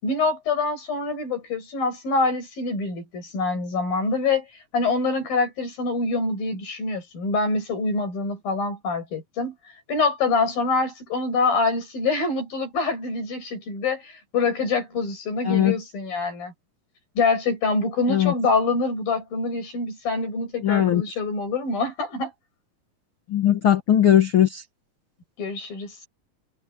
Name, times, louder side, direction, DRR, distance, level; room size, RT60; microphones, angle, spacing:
voice 1, 0.0-4.5 4.7-9.5 9.9-16.5 17.2-22.3 25.4-26.0, left 3 dB, 80° left, 9.1 m, -25 dB
voice 2, 15.5-15.8 18.1-18.3 20.6-21.0 23.3-24.6, left 11 dB, 50° left, 1.8 m, -19 dB
omnidirectional pair, 4.0 m